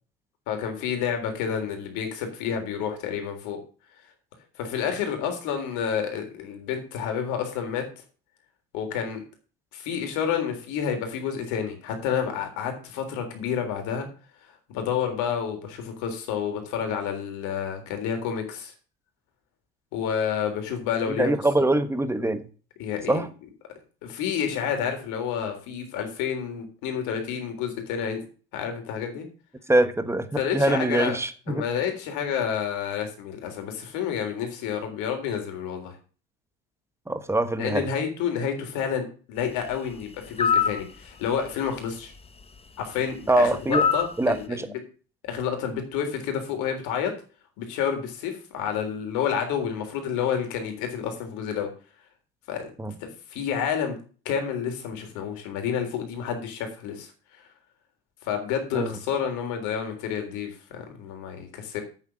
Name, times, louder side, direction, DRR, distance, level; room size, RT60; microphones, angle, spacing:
voice 1, 0.5-3.6 4.6-7.9 8.7-9.2 9.7-14.1 14.7-18.7 19.9-21.3 22.8-23.2 24.0-28.2 28.5-29.3 30.4-31.2 31.5-36.0 37.6-42.1 42.8-44.8 45.2-47.1 47.6-51.7 52.5-52.7 53.0-54.0 54.3-57.5 58.2-61.8, left 7 dB, 70° left, 3.7 m, -29 dB
voice 2, 21.1-22.4 23.1-23.3 29.7-30.3 30.5-31.7 37.1-37.9 43.3-43.8 44.2-44.7 52.8-52.9 58.7-59.0, right 2 dB, 10° right, 1.3 m, -23 dB
sound 1, 40.4-40.8 43.7-44.1, left 6 dB, 20° left, 1.3 m, -22 dB
8.8 x 7.3 x 6.3 m
supercardioid pair, 90°, 31 cm